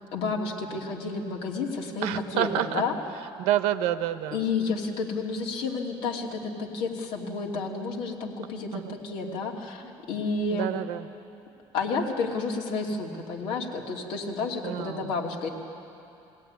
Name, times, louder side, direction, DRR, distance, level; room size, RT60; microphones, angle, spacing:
voice 1, 0.1-2.9 4.3-10.7 11.7-15.5, left 4 dB, 70° left, 0 dB, 2.8 m, -31 dB
voice 2, 2.0-2.8 3.4-4.4 8.7-8.9 10.5-11.1 14.6-15.1, right 12 dB, 85° right, 11 dB, 1.0 m, -28 dB
22.0 x 17.0 x 9.6 m, 2.8 s
cardioid pair, 180°, 10 cm